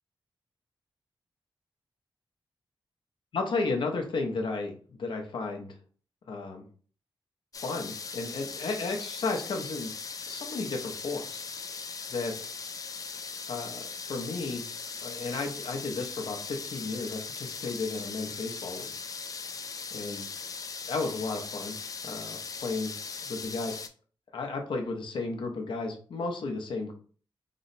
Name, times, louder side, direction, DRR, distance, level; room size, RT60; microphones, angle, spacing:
voice 1, 3.3-5.7 6.3-6.6 7.6-9.9 10.3-11.4 12.1-12.5 13.5-14.7 15.0-18.9 19.9-20.2 20.9-21.8 22.0-22.9 23.3-23.8 24.3-26.9, left 3 dB, 70° left, 3 dB, 0.7 m, -33 dB
sound 1, 7.5-23.9, left 5 dB, 40° left, 0.3 m, -39 dB
3.1 x 2.0 x 4.0 m, 0.42 s
wide cardioid pair, 120°, 9 cm